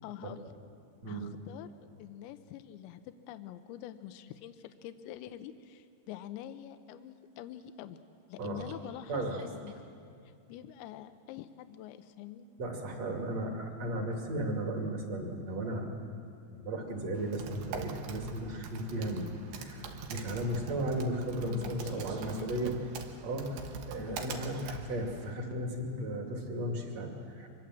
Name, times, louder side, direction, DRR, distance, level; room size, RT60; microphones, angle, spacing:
voice 1, 0.0-0.5 1.1-8.0 8.3-9.8 10.5-12.5 21.4-22.6 24.0-24.4, left 11 dB, 85° left, 10 dB, 3.0 m, -46 dB
voice 2, 9.1-9.4 12.6-15.9 16.5-19.3 19.5-22.8 23.2-23.6 23.8-27.5, right 1 dB, 40° right, 2 dB, 3.0 m, -35 dB
Typing, 17.1-25.3, right 4 dB, 85° right, 3.7 m, -43 dB
25.0 x 21.0 x 7.7 m, 2.4 s
omnidirectional pair, 5.2 m